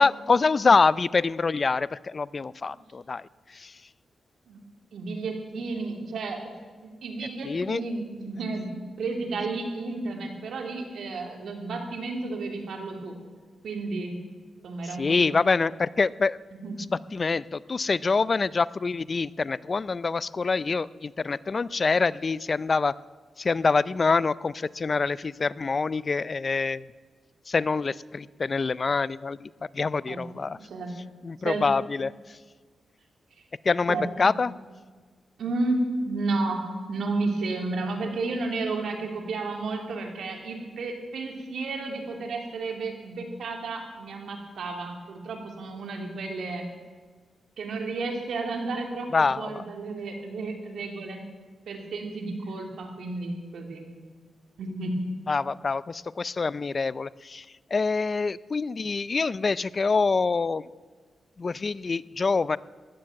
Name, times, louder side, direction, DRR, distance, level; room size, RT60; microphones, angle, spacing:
voice 1, 0.0-3.8 7.4-7.8 14.8-16.4 16.9-22.9 23.4-26.8 27.5-30.6 31.2-32.4 33.6-34.5 49.1-49.7 55.3-57.5 57.7-60.7 61.4-62.6, left 4 dB, 40° left, 19 dB, 0.4 m, -25 dB
voice 2, 4.9-6.4 6.8-8.7 9.0-13.1 13.6-14.1 14.6-15.5 16.5-16.7 30.1-30.2 30.5-30.9 31.4-31.6 33.9-34.3 35.4-46.6 47.6-49.1 49.4-51.2 51.7-53.8 54.6-54.9, right 3 dB, 80° right, 3 dB, 3.0 m, -32 dB
15.5 x 12.0 x 7.6 m, 1.5 s
cardioid pair, 75°, 0 cm